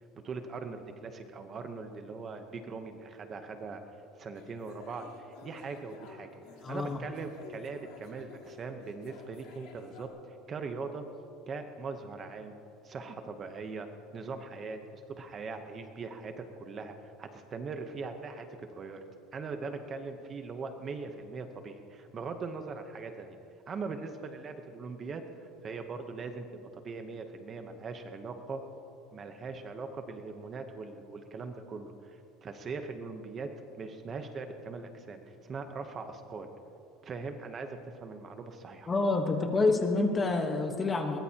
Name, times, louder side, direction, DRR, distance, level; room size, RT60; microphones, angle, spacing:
voice 1, 0.2-3.8 4.2-6.3 6.7-11.0 11.5-12.5 12.8-13.9 14.1-19.0 19.3-23.4 23.7-28.6 29.1-33.5 33.8-36.5 37.0-38.9, right 4 dB, 25° right, 6 dB, 0.8 m, -41 dB
sound 1, 4.3-10.1, left 5 dB, 75° left, 3.3 m, -52 dB
voice 2, 6.6-7.0 38.9-41.2, left 3 dB, 15° left, 4 dB, 1.1 m, -28 dB
22.0 x 20.0 x 2.9 m, 2.6 s
cardioid pair, 165°, 0 cm